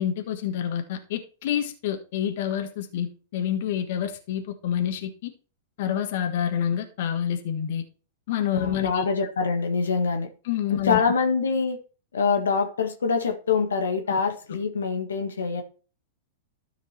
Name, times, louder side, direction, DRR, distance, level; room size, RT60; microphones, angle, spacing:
voice 1, 0.0-5.3 5.8-7.8 8.3-9.1 10.4-11.0, left 9 dB, 60° left, 1.6 m, -28 dB
voice 2, 8.5-10.3 10.8-11.8 12.1-15.6, left 5 dB, 85° left, 1.7 m, -25 dB
13.0 x 5.1 x 4.5 m
hypercardioid pair, 110°, 0 cm